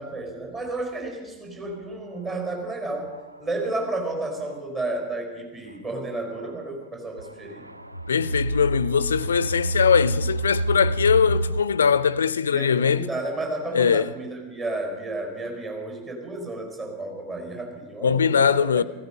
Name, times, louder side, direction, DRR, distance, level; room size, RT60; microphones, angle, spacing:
voice 1, 0.0-7.6 12.5-18.8, right 2 dB, 30° right, 4.7 m, -32 dB
sound 1, 2.3-2.4 3.0-3.4 4.4-4.5 6.3-6.6 7.2-11.6, right 1 dB, 85° right, 0.5 m, -28 dB
voice 2, 8.1-13.1 13.7-14.1 18.0-18.8, left 6 dB, 70° left, 0.4 m, -21 dB
16.0 x 15.5 x 5.4 m
figure-of-eight pair, 90°, 0 cm